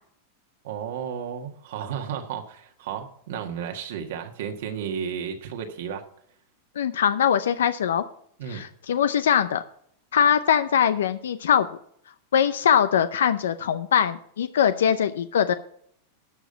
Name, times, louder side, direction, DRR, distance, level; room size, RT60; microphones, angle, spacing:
voice 1, 0.6-6.0 8.4-8.6, right 8 dB, 75° right, 4 dB, 1.6 m, -33 dB
voice 2, 6.8-8.0 8.5-9.6 10.1-11.7 12.3-15.5, left 8 dB, 90° left, 12 dB, 0.5 m, -22 dB
12.0 x 5.1 x 6.7 m, 0.65 s
hypercardioid pair, 125°, 0 cm